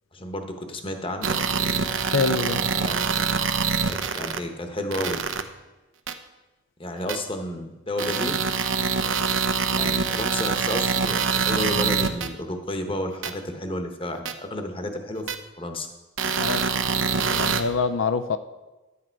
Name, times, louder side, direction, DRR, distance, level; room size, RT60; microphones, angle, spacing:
voice 1, 0.1-1.4 2.8-3.0 3.9-5.2 6.8-8.4 9.7-15.3 15.6-15.9, left 1 dB, 30° left, 5 dB, 1.0 m, -31 dB
sound 1, 1.2-4.4 4.9-5.4 6.1-6.2 7.1-7.2 8.0-12.3 13.2-13.3 14.2-14.3 15.3-15.4 16.2-17.6, right 5 dB, 80° right, 0.8 m, -24 dB
voice 2, 2.0-2.6 16.4-16.9 17.2-18.4, left 4 dB, 80° left, 10 dB, 0.5 m, -26 dB
11.0 x 8.6 x 4.6 m, 1.1 s
head